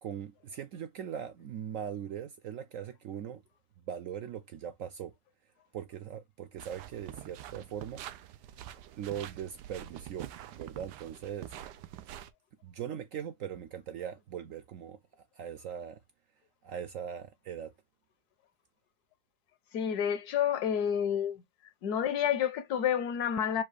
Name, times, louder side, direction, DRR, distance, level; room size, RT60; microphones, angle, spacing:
voice 1, 0.0-3.4 3.9-5.1 5.7-8.0 9.0-10.3 10.6-11.5 12.6-15.0 15.3-16.0 16.6-17.7, right 9 dB, 70° right, 0.8 m, -40 dB
sound 1, 6.6-12.3, right 12 dB, 85° right, 1.2 m, -46 dB
voice 2, 19.7-21.4 21.8-23.6, left 9 dB, 75° left, 1.2 m, -29 dB
4.7 x 2.3 x 4.7 m
omnidirectional pair, 1.8 m